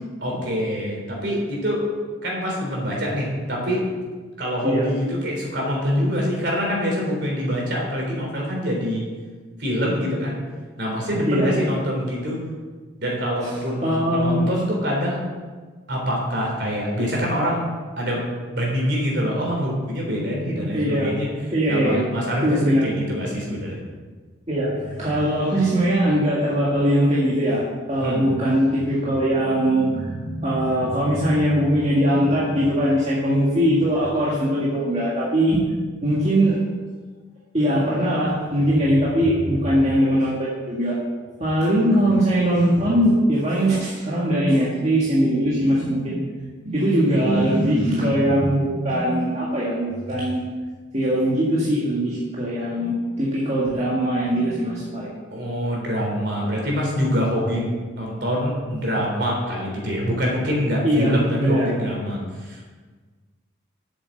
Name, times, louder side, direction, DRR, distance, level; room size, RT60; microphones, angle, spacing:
voice 1, 0.2-1.9 2.2-3.8 4.4-9.0 9.6-10.4 10.8-12.4 13.0-15.2 15.9-17.6 18.0-21.3 21.7-23.8 28.0-28.3 47.1-47.9 55.3-62.7, equal, 60° right, -2 dB, 3.6 m, -25 dB
voice 2, 13.8-14.5 20.7-21.1 21.5-22.0 22.4-22.8 24.5-27.6 27.9-35.6 36.0-36.6 37.5-40.9 41.4-46.2 46.6-50.4 50.9-55.1 60.8-61.7, equal, 35° right, -7 dB, 1.9 m, -21 dB
8.1 x 7.6 x 7.8 m, 1.4 s
head